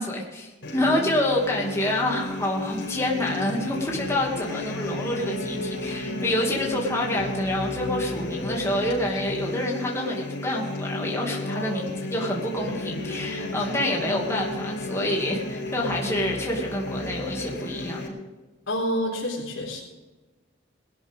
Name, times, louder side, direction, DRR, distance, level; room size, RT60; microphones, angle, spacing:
voice 1, 0.0-18.2, left 1 dB, 15° left, -2 dB, 2.5 m, -27 dB
sound 1, 0.6-18.1, left 2 dB, 60° left, 4.8 m, -32 dB
voice 2, 11.4-11.8 12.4-12.7 18.7-19.8, equal, 85° left, -4 dB, 4.0 m, -29 dB
20.5 x 12.5 x 3.7 m, 1.2 s
head